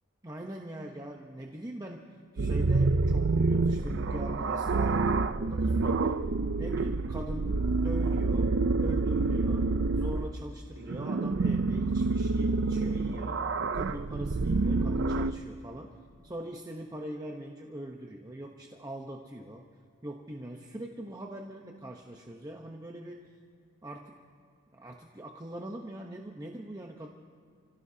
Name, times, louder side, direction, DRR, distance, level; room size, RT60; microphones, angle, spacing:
voice 1, 0.2-6.2 6.6-16.0 16.2-19.7 20.0-23.3 23.8-24.2 24.7-27.1, right 1 dB, 20° right, 1 dB, 0.9 m, -42 dB
sound 1, 2.4-10.3 10.8-15.3, right 3 dB, 60° right, 0.6 m, -27 dB
29.5 x 16.5 x 2.8 m, 2.3 s
head